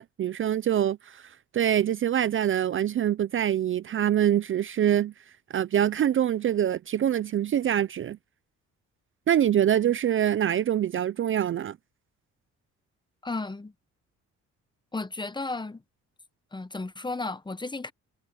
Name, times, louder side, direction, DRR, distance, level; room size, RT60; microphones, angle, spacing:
voice 1, 0.0-5.1 5.5-8.2 9.3-11.8, right 10 dB, 45° right, 0.5 m, -25 dB
voice 2, 13.2-13.7 14.9-15.8 16.5-17.9, left 3 dB, 15° left, 1.1 m, -33 dB
cardioid pair, 90°, 30 cm